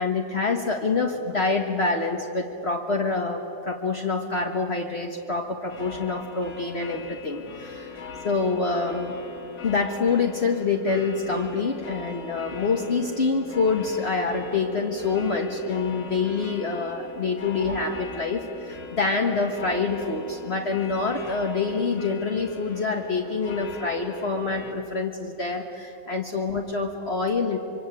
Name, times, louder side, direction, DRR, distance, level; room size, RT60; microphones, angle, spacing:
voice 1, 0.0-8.0 8.2-9.1 9.6-27.6, left 4 dB, 40° left, 1 dB, 1.8 m, -26 dB
sound 1, 5.7-24.7, left 5 dB, 85° left, 2.2 m, -41 dB
25.0 x 24.5 x 9.1 m, 2.8 s
omnidirectional pair, 1.7 m